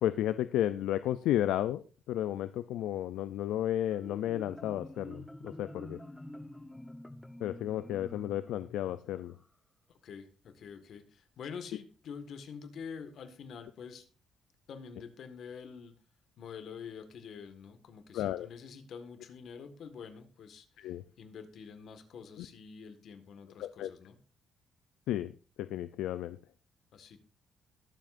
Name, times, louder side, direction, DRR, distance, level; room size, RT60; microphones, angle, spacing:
voice 1, 0.0-6.0 7.4-9.4 18.1-18.5 20.8-21.0 22.4-22.5 23.6-23.9 25.1-26.4, left 12 dB, 90° left, 13 dB, 0.4 m, -33 dB
Marimba xylophone, 3.9-9.4, left 1 dB, 10° left, 0.9 m, -48 dB
voice 2, 10.0-14.1 14.7-16.0 16.4-20.7 21.2-24.2 26.9-27.2, left 6 dB, 65° left, 9 dB, 1.6 m, -46 dB
21.0 x 7.5 x 2.6 m, 0.37 s
cardioid pair, 90°, 0 cm